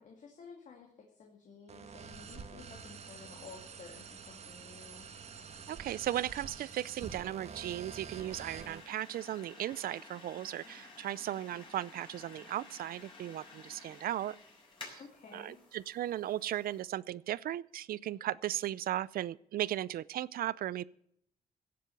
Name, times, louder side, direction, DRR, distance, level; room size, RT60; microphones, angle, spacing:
voice 1, 0.0-5.1 15.0-15.6, left 5 dB, 50° left, 1 dB, 2.3 m, -53 dB
sound 1, 1.7-8.8, right 5 dB, 45° right, 1.5 m, -47 dB
voice 2, 5.7-14.4 14.8-15.0 15.3-20.8, right 12 dB, 70° right, 21 dB, 0.5 m, -36 dB
sound 2, 6.7-16.8, left 3 dB, 30° left, 5.1 m, -54 dB
16.5 x 7.7 x 7.1 m, 0.71 s
cardioid pair, 145°, 16 cm